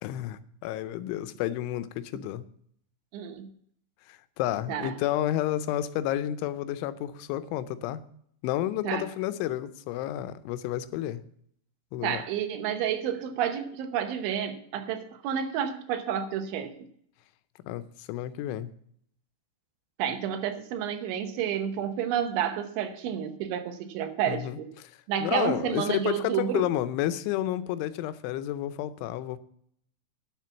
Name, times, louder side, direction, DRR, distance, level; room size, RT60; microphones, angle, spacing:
voice 1, 0.0-2.4 4.1-8.0 8.4-11.2 11.9-12.2 17.7-18.7 24.3-24.6 24.8-29.4, left 13 dB, 85° left, 3.1 m, -31 dB
voice 2, 3.1-3.5 4.7-4.9 8.8-9.1 12.0-16.7 20.0-24.7 25.1-26.6, right 9 dB, 80° right, 3.4 m, -30 dB
10.0 x 7.5 x 7.1 m
omnidirectional pair, 5.3 m